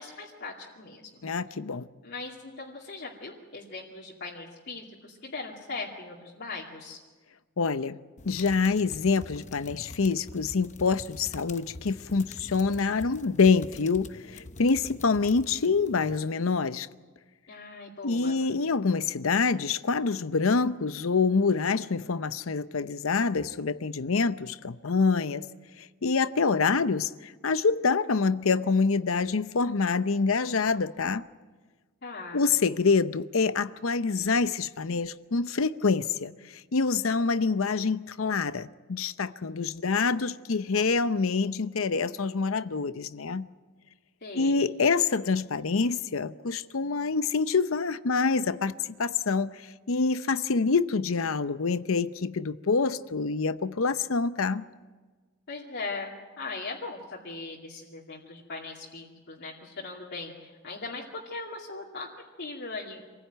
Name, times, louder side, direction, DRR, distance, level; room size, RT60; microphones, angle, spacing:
voice 1, 0.0-1.2 2.0-7.0 17.5-18.4 32.0-32.4 44.2-44.6 55.5-62.1 62.4-63.0, left 3 dB, 55° left, 2.4 m, -39 dB
voice 2, 1.2-1.9 7.6-8.0 8.3-16.9 18.0-25.5 26.0-31.3 32.3-36.3 36.7-43.5 44.3-49.6 49.9-54.7, left 4 dB, 70° left, 0.7 m, -26 dB
sound 1, 8.2-16.2, left 3 dB, 35° left, 0.8 m, -46 dB
26.5 x 16.0 x 9.2 m
head